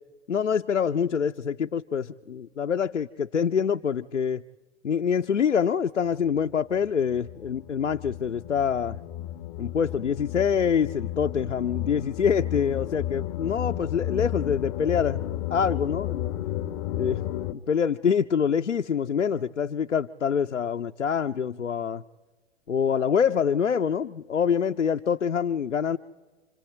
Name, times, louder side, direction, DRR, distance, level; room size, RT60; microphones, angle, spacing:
voice 1, 0.3-4.4 4.8-9.0 9.6-15.2 15.5-16.3 17.0-22.0 22.7-26.0, left 7 dB, 90° left, 6 dB, 0.6 m, -25 dB
sound 1, 6.4-6.5 6.7-17.5, left 12 dB, 30° left, 0.7 m, -33 dB
27.0 x 26.0 x 4.4 m, 1.3 s
figure-of-eight pair, 115°, 36 cm